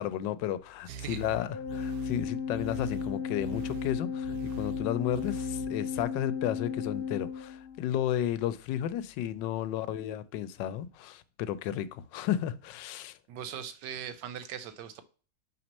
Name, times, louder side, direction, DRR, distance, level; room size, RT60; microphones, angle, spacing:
voice 1, 0.0-13.2, left 11 dB, 85° left, 1.2 m, -33 dB
sound 1, 0.9-6.0, right 6 dB, 65° right, 1.0 m, -43 dB
voice 2, 0.9-1.2 13.3-15.0, right 8 dB, 80° right, 1.3 m, -40 dB
Organ, 1.5-8.1, left 7 dB, 60° left, 1.5 m, -35 dB
5.9 x 3.1 x 5.3 m
omnidirectional pair, 1.9 m